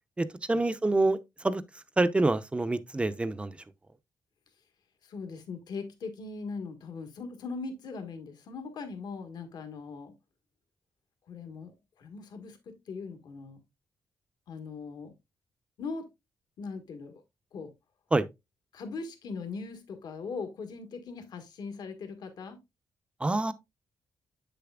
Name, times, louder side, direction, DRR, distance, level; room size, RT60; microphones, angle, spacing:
voice 1, 0.2-1.2 1.4-1.6 2.0-3.5 18.1-18.3 23.2-23.5, right 2 dB, 15° right, 0.6 m, -26 dB
voice 2, 5.0-10.1 11.3-13.6 14.5-15.1 15.8-16.1 16.6-17.2 17.5-17.7 18.7-22.6, left 4 dB, 70° left, 1.6 m, -40 dB
7.9 x 6.8 x 2.4 m
cardioid pair, 105°, 7 cm